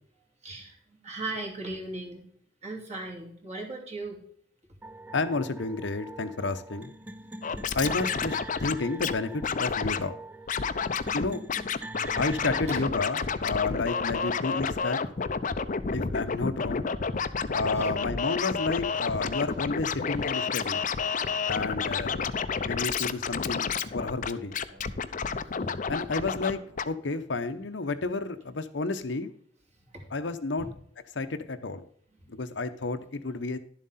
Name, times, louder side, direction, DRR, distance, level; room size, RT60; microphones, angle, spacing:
voice 1, 0.4-2.2 2.6-4.2 12.4-12.8 15.4-15.5 17.7-17.9 29.9-30.1 30.6-30.7 32.2-32.3, right 2 dB, 35° right, 0 dB, 2.7 m, -38 dB
sound 1, 4.8-12.8, right 2 dB, 10° right, 0.4 m, -44 dB
voice 2, 5.1-6.9 7.7-10.1 11.1-11.4 12.2-15.0 15.9-16.9 17.5-20.8 21.5-22.2 22.6-24.6 25.9-29.3 30.1-30.7 31.1-31.8 32.3-33.6, left 3 dB, 70° left, 9 dB, 0.8 m, -31 dB
Scratching (performance technique), 7.4-9.1 9.4-10.0 10.5-11.2 11.5-26.5 26.8-26.9, left 5 dB, 45° left, 0.6 m, -30 dB
sound 2, 11.9-27.4, right 1 dB, 65° right, 1.9 m, -56 dB
11.5 x 7.5 x 4.2 m, 0.63 s
head